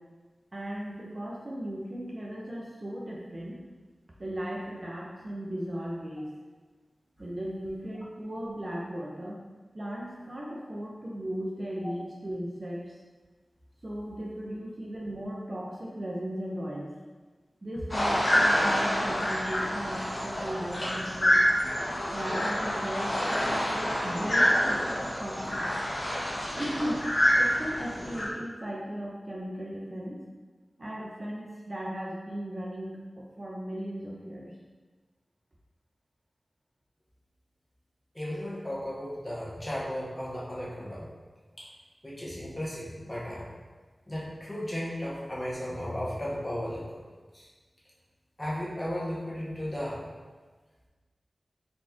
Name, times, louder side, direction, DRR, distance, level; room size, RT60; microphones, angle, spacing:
voice 1, 0.5-3.6 4.2-6.3 7.2-9.4 9.7-13.0 13.8-16.9 17.6-21.4 22.1-25.7 26.6-27.1 27.3-30.2 30.8-34.5, equal, 40° right, -4 dB, 0.6 m, -37 dB
sound 1, 17.9-28.3, equal, 35° left, 1.3 m, -27 dB
voice 2, 38.1-41.1 41.6-41.7 42.0-43.5 44.1-46.8 47.3-47.5 48.4-50.0, equal, 15° left, -7 dB, 1.3 m, -35 dB
4.2 x 3.0 x 3.5 m, 1.4 s
wide cardioid pair, 80°, 0 cm